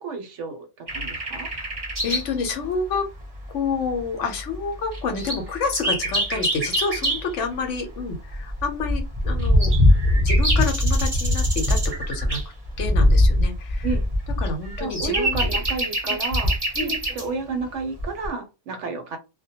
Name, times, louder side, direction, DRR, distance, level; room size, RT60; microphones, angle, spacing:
voice 1, 0.0-1.5 13.8-14.1 14.8-16.5 16.8-19.2, right 4 dB, 70° right, 0.8 m, -31 dB
sound 1, 0.9-2.3 2.6-2.7 3.4-3.5 3.7-4.0 4.5-4.6 4.9-7.3 8.0-17.2 18.0-18.3, equal, 25° right, 0.6 m, -22 dB
voice 2, 1.3-1.7 2.0-3.1 3.5-9.7 10.2-12.4 12.8-13.9 14.4-15.5 16.1-16.2 16.8-16.9, left 4 dB, 70° left, 0.9 m, -29 dB
2.2 x 2.1 x 2.7 m
omnidirectional pair, 1.4 m